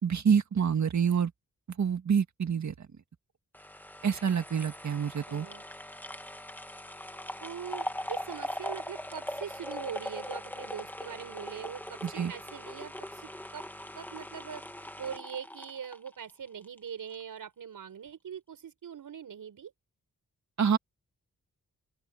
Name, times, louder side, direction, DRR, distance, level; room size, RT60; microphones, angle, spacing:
voice 1, 0.0-1.3 1.8-2.9 4.0-5.5 12.0-12.3 20.6-20.8, right 7 dB, 60° right, 1.8 m, -27 dB
sound 1, 3.5-16.8 17.1-17.2, left 1 dB, 5° left, 1.8 m, -41 dB
voice 2, 5.3-5.6 7.4-13.6 14.0-14.6 15.0-19.7, right 8 dB, 90° right, 6.1 m, -42 dB
open air
wide cardioid pair, 95°, 32 cm